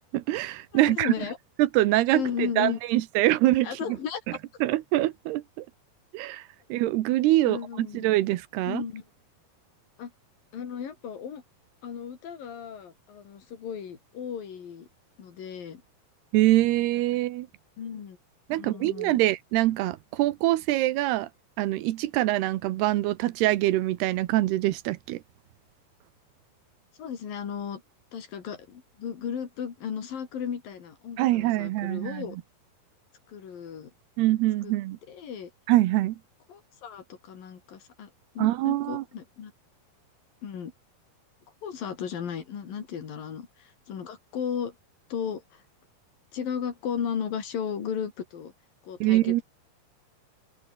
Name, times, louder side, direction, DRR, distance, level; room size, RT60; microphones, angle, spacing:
voice 1, 0.1-1.1 1.6-3.7 4.6-5.7 6.1-6.4 6.7-8.8 16.3-17.5 18.5-21.3 21.6-25.2 31.2-32.4 34.2-35.0 35.7-36.2 38.4-39.0 49.0-49.4, right 16 dB, 90° right, 3.1 m, -24 dB
voice 2, 0.7-1.4 2.1-2.8 3.6-4.2 7.4-8.0 8.7-9.0 10.0-10.1 10.5-11.4 11.8-14.9 15.2-15.8 17.8-18.2 18.5-19.2 27.0-27.8 28.1-32.4 33.3-33.9 34.6-34.7 35.1-35.5 36.5-38.1 38.4-39.5 40.4-40.7 41.6-44.8 45.1-45.6 46.3-48.5 48.8-49.4, left 7 dB, 65° left, 4.6 m, -35 dB
omnidirectional pair, 4.5 m